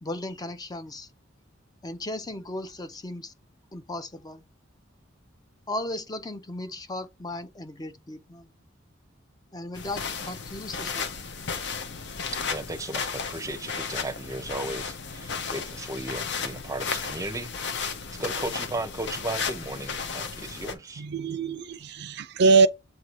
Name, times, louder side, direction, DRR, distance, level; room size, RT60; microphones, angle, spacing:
voice 1, 0.0-1.1 1.8-3.3 3.7-4.4 5.7-8.5 9.5-11.1, left 1 dB, 20° left, 0.6 m, -36 dB
sound 1, 9.8-20.7, left 5 dB, 60° left, 0.8 m, -34 dB
voice 2, 12.5-21.0, right 2 dB, 15° right, 0.7 m, -35 dB
voice 3, 21.0-22.7, right 4 dB, 55° right, 0.4 m, -22 dB
7.6 x 2.7 x 4.6 m
head